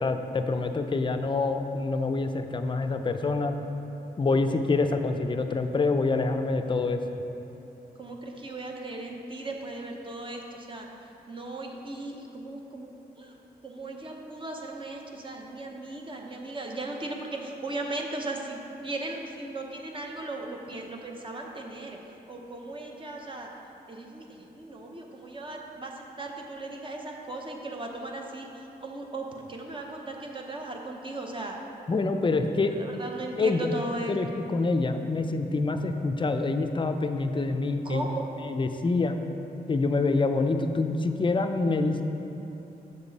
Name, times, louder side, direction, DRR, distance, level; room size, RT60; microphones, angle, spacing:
voice 1, 0.0-3.6 4.2-7.0 31.9-32.7 33.4-33.7 34.1-38.1 38.4-39.2 39.7-42.0, left 3 dB, 30° left, 6 dB, 0.5 m, -26 dB
voice 2, 8.0-10.9 11.3-12.9 13.2-13.3 13.6-22.0 22.3-23.5 23.9-31.6 32.3-34.2 37.8-38.2, right 2 dB, 30° right, 1 dB, 0.9 m, -37 dB
7.0 x 6.7 x 4.1 m, 3.0 s
cardioid pair, 90°, 17 cm